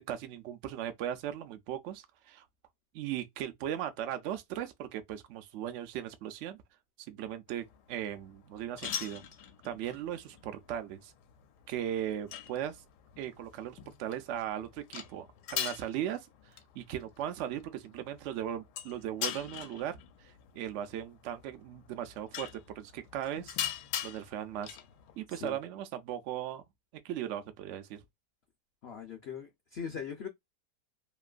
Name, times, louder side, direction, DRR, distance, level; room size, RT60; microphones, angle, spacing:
voice 1, 0.0-2.4 2.9-6.6 7.1-9.2 9.6-11.1 11.7-12.8 13.2-20.0 20.2-23.6 24.0-24.8 25.2-26.6 27.0-28.0, right 10 dB, 70° right, 0.7 m, -38 dB
sound 1, 7.5-25.3, left 10 dB, 80° left, 1.1 m, -43 dB
voice 2, 28.8-30.3, left 7 dB, 60° left, 0.7 m, -40 dB
3.0 x 2.5 x 2.4 m
omnidirectional pair, 1.8 m